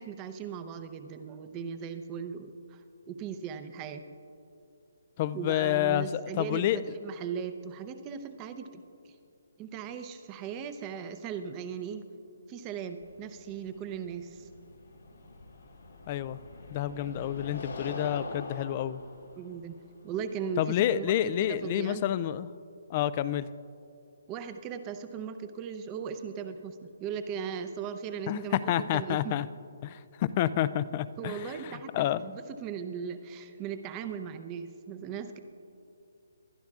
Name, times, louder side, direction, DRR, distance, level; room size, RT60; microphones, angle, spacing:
voice 1, 0.0-4.0 5.3-9.1 9.6-12.1 12.5-14.5 19.4-19.8 20.0-22.1 24.3-29.4 31.2-35.4, right 7 dB, 20° right, 9 dB, 0.7 m, -38 dB
voice 2, 5.2-6.8 16.1-16.4 16.7-19.0 20.6-22.5 22.9-23.5 28.3-29.5 29.8-32.3, left 12 dB, 30° left, 16 dB, 0.3 m, -29 dB
sound 1, 13.0-21.8, left 2 dB, 90° left, 2.7 m, -44 dB
22.0 x 11.5 x 2.4 m, 2.5 s
hypercardioid pair, 155°, 0 cm